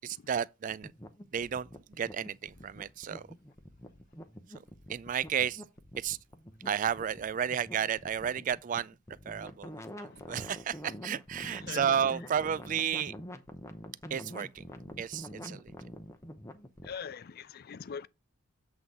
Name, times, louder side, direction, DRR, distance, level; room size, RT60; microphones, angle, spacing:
voice 1, 0.0-0.9 1.3-3.3 4.9-5.6 6.0-6.2 6.7-9.0 9.3-13.1 14.1-14.7 15.0-15.7, right 8 dB, 40° right, 0.3 m, -32 dB
sound 1, 0.8-17.0, equal, 15° left, 0.8 m, -46 dB
voice 2, 11.4-11.9 16.8-18.1, left 6 dB, 45° left, 0.4 m, -42 dB
7.8 x 3.8 x 5.5 m
head